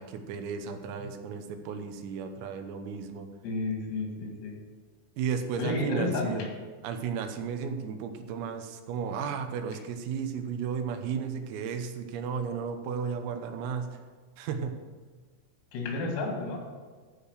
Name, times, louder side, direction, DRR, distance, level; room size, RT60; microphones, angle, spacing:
voice 1, 0.0-3.3 5.2-6.5 6.8-14.0 14.4-14.8, right 6 dB, 90° right, 6 dB, 3.7 m, -34 dB
voice 2, 3.4-4.6 5.6-6.5 15.7-16.6, left 3 dB, 80° left, 1 dB, 4.8 m, -31 dB
14.5 x 5.0 x 6.4 m, 1.4 s
omnidirectional pair, 5.9 m